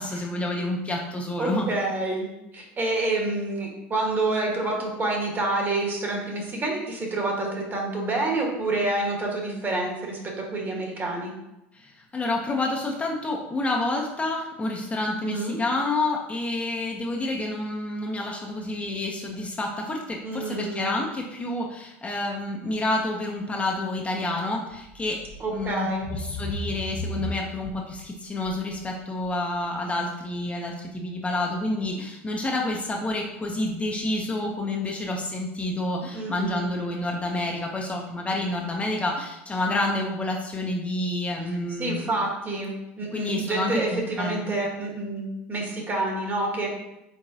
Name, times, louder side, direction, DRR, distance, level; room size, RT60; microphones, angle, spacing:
voice 1, 0.0-1.7 11.7-25.2 25.5-42.1 43.1-44.4, left 2 dB, 20° left, 0 dB, 0.7 m, -29 dB
voice 2, 1.4-11.3 15.2-15.6 20.2-20.9 25.4-26.1 36.1-36.7 41.8-46.7, right 2 dB, 30° right, 0 dB, 1.3 m, -28 dB
sound 1, 24.7-24.9 25.2-25.7 26.0-28.0 28.4-28.8 29.3-29.4, equal, 90° left, 0.8 m, -34 dB
4.7 x 3.7 x 2.7 m, 0.91 s
hypercardioid pair, 90°, 7 cm